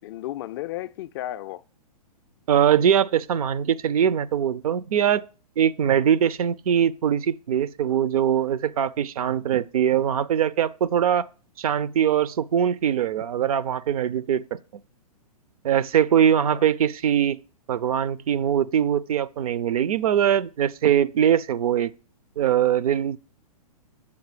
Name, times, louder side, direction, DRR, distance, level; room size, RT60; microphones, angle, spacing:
voice 1, 0.0-1.6 16.3-16.6, left 14 dB, 40° left, 0.4 m, -34 dB
voice 2, 2.5-5.2 5.6-11.3 11.6-14.6 15.6-17.4 17.7-21.9 22.4-23.2, right 9 dB, 65° right, 0.6 m, -22 dB
9.1 x 7.2 x 4.9 m
hypercardioid pair, 130°, 20 cm